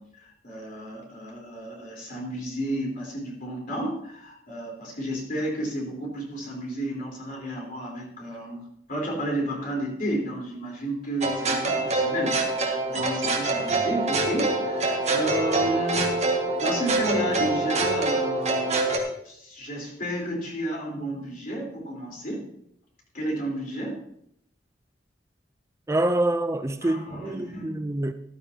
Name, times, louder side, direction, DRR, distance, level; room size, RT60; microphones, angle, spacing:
voice 1, 0.0-18.9 19.2-22.5 23.1-24.0 26.8-27.9, equal, 50° left, 3.9 m, -32 dB
sound 1, 11.2-19.0, right 2 dB, 40° right, 1.6 m, -25 dB
voice 2, 25.9-28.1, right 1 dB, 15° right, 0.4 m, -26 dB
14.0 x 12.0 x 2.8 m
head